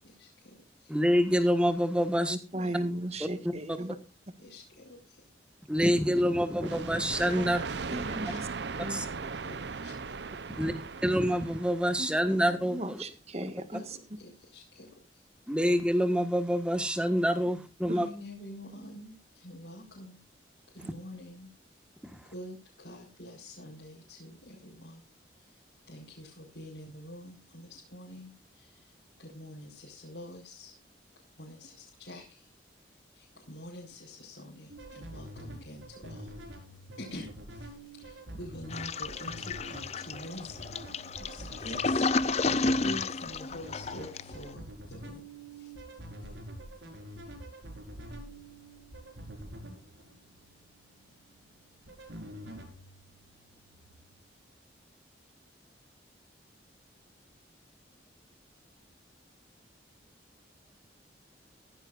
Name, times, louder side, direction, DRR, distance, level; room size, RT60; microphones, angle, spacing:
voice 1, 0.0-1.0 2.5-2.9 3.8-3.9 4.4-5.2 7.3-7.5 8.2-8.4 8.9-10.2 10.5-10.7 13.7-15.2 17.8-20.2 20.7-21.5 22.1-25.0 25.4-25.6 25.9-28.9 29.2-30.7 31.4-32.5 33.1-36.3 37.0-42.1 42.5-45.2 45.5-45.7, left 1 dB, 70° left, -4 dB, 4.6 m, -47 dB
voice 2, 0.9-2.4 3.2-3.8 5.7-7.6 8.9-9.0 10.6-10.7 11.0-13.0 15.5-18.1 22.1-22.2, equal, 5° right, 9 dB, 1.5 m, -27 dB
voice 3, 2.3-4.0 7.4-7.5 7.9-8.5 8.8-9.0 12.0-12.4 12.7-14.0 17.9-18.1, right 1 dB, 35° right, 10 dB, 1.7 m, -36 dB
sound 1, 6.6-12.2, right 4 dB, 65° right, 0.7 m, -38 dB
sound 2, 34.7-54.2, right 1 dB, 90° right, 4.8 m, -46 dB
Toilet flush, 38.7-44.4, left 3 dB, 35° left, 0.6 m, -31 dB
16.0 x 14.5 x 2.5 m, 0.29 s
head